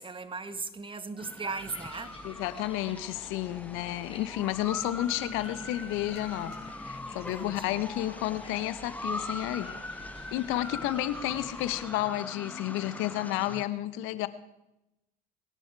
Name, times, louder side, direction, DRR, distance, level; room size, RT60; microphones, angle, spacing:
voice 1, 0.0-2.2 7.3-7.8, right 4 dB, 25° right, 1.5 m, -38 dB
sound 1, 1.2-13.7, left 2 dB, 5° left, 0.9 m, -42 dB
sound 2, 1.5-11.8, left 1 dB, 30° left, 6.0 m, -51 dB
sound 3, 1.7-13.4, left 5 dB, 55° left, 5.7 m, -54 dB
voice 2, 2.2-9.7 10.3-14.3, left 14 dB, 70° left, 1.0 m, -31 dB
22.5 x 10.5 x 4.6 m
hypercardioid pair, 70°, 21 cm